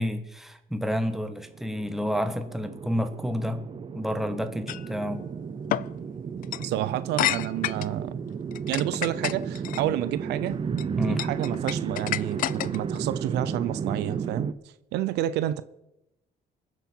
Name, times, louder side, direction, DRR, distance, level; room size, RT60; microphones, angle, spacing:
voice 1, 0.0-3.6 3.9-5.2 11.0-11.2, equal, ahead, 1.3 m, -30 dB
sound 1, 1.3-14.5, right 6 dB, 30° right, 0.7 m, -33 dB
sound 2, 4.7-4.9 5.7-5.9 6.4-6.7 7.2-7.9 8.5-9.8 10.5-10.8 11.2-13.0, left 13 dB, 55° left, 0.4 m, -29 dB
voice 2, 6.6-8.2 8.7-10.6 11.0-14.5 14.9-15.6, right 13 dB, 80° right, 0.6 m, -29 dB
23.0 x 7.8 x 4.5 m
cardioid pair, 110°, 17 cm